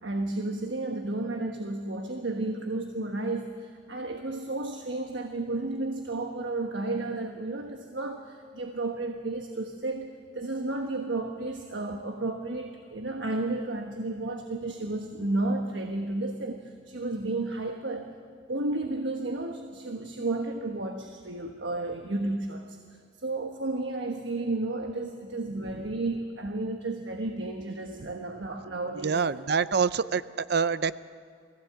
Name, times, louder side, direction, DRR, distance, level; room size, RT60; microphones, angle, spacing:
voice 1, 0.0-18.1 18.5-29.2, right 2 dB, 75° right, 3 dB, 1.3 m, -32 dB
voice 2, 25.7-26.0 28.0-28.1 29.0-31.0, right 5 dB, 60° right, 16 dB, 0.5 m, -27 dB
21.0 x 15.5 x 8.0 m, 2.3 s
head